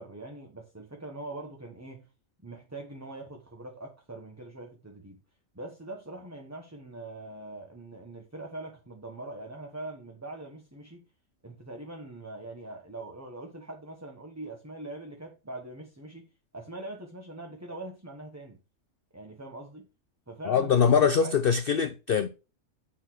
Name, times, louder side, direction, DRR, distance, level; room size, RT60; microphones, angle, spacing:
voice 1, 0.0-2.1 2.4-5.2 5.5-11.1 11.4-18.6 19.1-19.9 20.3-21.3, right 2 dB, 10° right, 1.0 m, -42 dB
voice 2, 20.4-22.3, left 7 dB, 55° left, 0.6 m, -23 dB
9.2 x 4.2 x 6.0 m
omnidirectional pair, 1.5 m